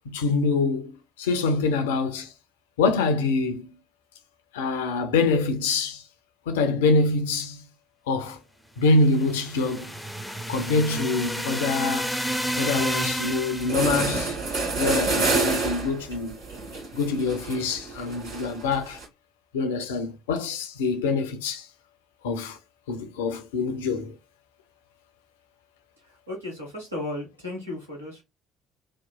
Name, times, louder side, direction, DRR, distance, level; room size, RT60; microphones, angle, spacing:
voice 1, 0.1-0.9 1.2-2.3 2.8-3.7 4.5-6.0 6.5-7.6 8.1-8.4 8.8-9.9 10.5-12.2 12.6-14.4 14.8-16.4 16.9-19.0 19.5-21.7 22.2-22.6 22.9-24.1, left 3 dB, 70° left, 0.4 m, -25 dB
sound 1, 9.0-14.0, equal, 5° left, 0.5 m, -30 dB
sound 2, 13.2-13.3 13.6-19.0, right 3 dB, 65° right, 1.4 m, -28 dB
voice 2, 26.0-28.2, left 1 dB, 85° right, 1.1 m, -35 dB
2.9 x 2.0 x 2.2 m
figure-of-eight pair, 50°, 0 cm